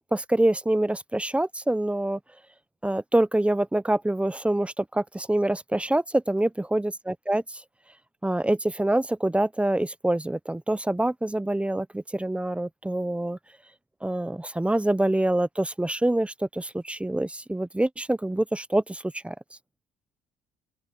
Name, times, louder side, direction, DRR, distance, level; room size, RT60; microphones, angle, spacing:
voice 1, 0.1-2.2 2.8-7.4 8.2-13.4 14.0-19.3, right 1 dB, 5° right, 0.6 m, -25 dB
cardioid pair, 110°, 17 cm